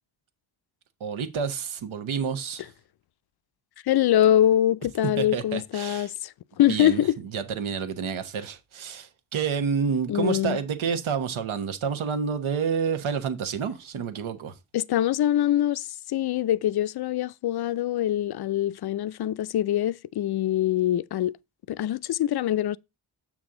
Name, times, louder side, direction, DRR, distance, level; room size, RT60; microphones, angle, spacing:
voice 1, 1.0-2.7 5.2-6.1 6.7-14.5, right 6 dB, 80° right, 1.2 m, -29 dB
voice 2, 3.9-7.2 10.1-10.6 14.7-21.3 21.7-22.8, left 12 dB, 55° left, 0.5 m, -24 dB
7.5 x 6.2 x 3.7 m
cardioid pair, 60°, 48 cm